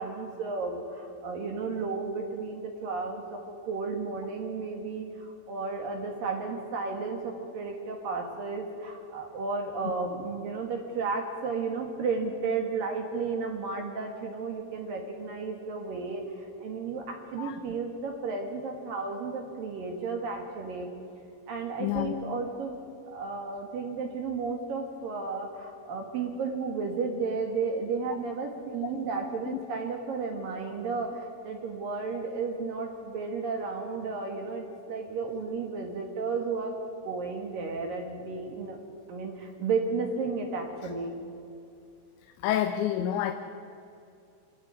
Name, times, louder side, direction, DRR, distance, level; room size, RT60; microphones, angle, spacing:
voice 1, 0.0-20.9 21.5-22.8 23.0-36.8 37.0-38.8 39.1-41.1, right 4 dB, 55° right, 2 dB, 3.0 m, -33 dB
voice 2, 21.8-22.2 42.4-43.3, left 11 dB, 80° left, 7 dB, 3.0 m, -28 dB
27.0 x 12.5 x 9.7 m, 2.5 s
omnidirectional pair, 5.5 m